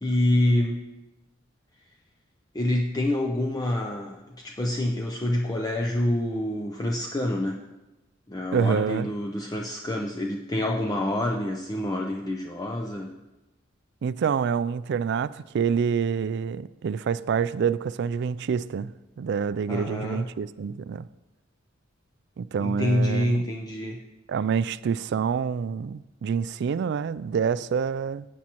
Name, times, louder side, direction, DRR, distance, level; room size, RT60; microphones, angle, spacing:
voice 1, 0.0-0.9 2.5-7.6 8.3-13.2 19.7-20.3 22.6-24.1, left 1 dB, 20° left, 0.5 m, -27 dB
voice 2, 8.5-9.1 14.0-18.9 19.2-21.1 22.4-23.4 24.3-28.3, right 6 dB, 60° right, 0.3 m, -27 dB
15.5 x 8.4 x 3.0 m
head